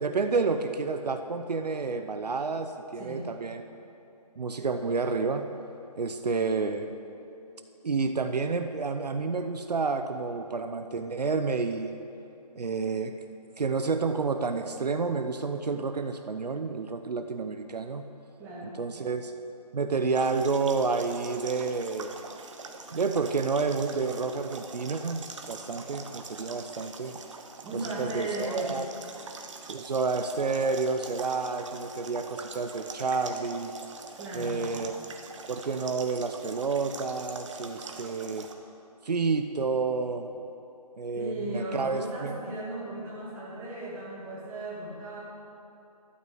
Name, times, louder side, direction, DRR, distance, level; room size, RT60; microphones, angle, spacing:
voice 1, 0.0-3.6 4.4-5.5 6.0-6.9 7.8-12.0 12.5-13.1 13.6-18.1 18.8-19.3 19.7-22.2 22.9-27.2 27.7-28.8 29.7-33.7 34.3-34.9 35.5-38.5 39.0-40.3 41.0-42.6, right 4 dB, 75° right, 7 dB, 0.7 m, -30 dB
voice 2, 2.9-3.3 18.4-18.8 27.6-28.7 34.2-34.7 41.2-45.2, right 1 dB, 10° right, -8 dB, 2.3 m, -36 dB
sound 1, 20.1-38.5, right 4 dB, 50° right, 1.1 m, -43 dB
12.5 x 6.3 x 7.9 m, 2.9 s
figure-of-eight pair, 155°, 21 cm